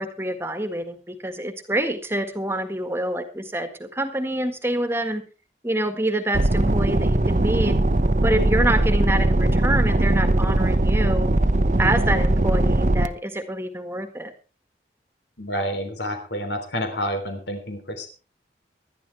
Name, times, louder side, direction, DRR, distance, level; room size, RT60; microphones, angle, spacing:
voice 1, 0.0-5.2 5.6-7.8 8.2-11.3 11.8-14.3, right 1 dB, 15° right, 8 dB, 1.7 m, -26 dB
sound 1, 6.3-13.1, right 1 dB, 45° right, 0.8 m, -20 dB
voice 2, 15.4-18.1, equal, 85° left, 6 dB, 3.5 m, -29 dB
20.0 x 12.5 x 3.4 m, 0.33 s
head